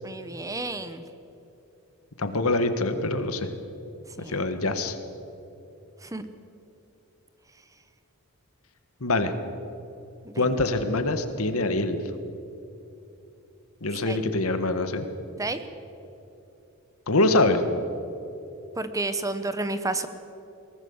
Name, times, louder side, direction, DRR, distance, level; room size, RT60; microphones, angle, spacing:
voice 1, 0.0-1.0 4.2-4.4 6.0-6.3 10.2-10.4 14.0-14.2 15.4-15.6 18.8-20.1, right 2 dB, 15° right, 11 dB, 0.9 m, -31 dB
voice 2, 2.2-3.5 4.3-5.0 9.0-9.3 10.4-12.0 13.8-15.1 17.1-17.6, left 2 dB, 70° left, 9 dB, 1.6 m, -24 dB
22.0 x 18.0 x 7.3 m, 2.9 s
head